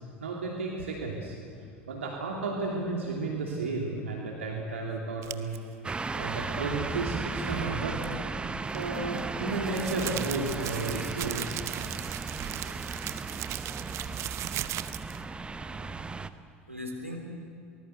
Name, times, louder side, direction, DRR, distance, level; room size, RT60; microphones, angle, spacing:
voice 1, 0.2-1.3 1.9-5.6 6.1-8.0 8.7-11.5 12.7-12.8, right 3 dB, 70° right, -1 dB, 2.8 m, -33 dB
sound 1, 5.2-5.6 8.7-15.2, right 14 dB, 40° right, 0.9 m, -37 dB
sound 2, 5.8-16.3, right 4 dB, 15° right, 0.9 m, -36 dB
voice 2, 15.5-16.1 16.7-17.2, left 1 dB, 90° right, 0 dB, 3.5 m, -42 dB
25.0 x 19.0 x 8.1 m, 2.4 s
figure-of-eight pair, 75°, 7 cm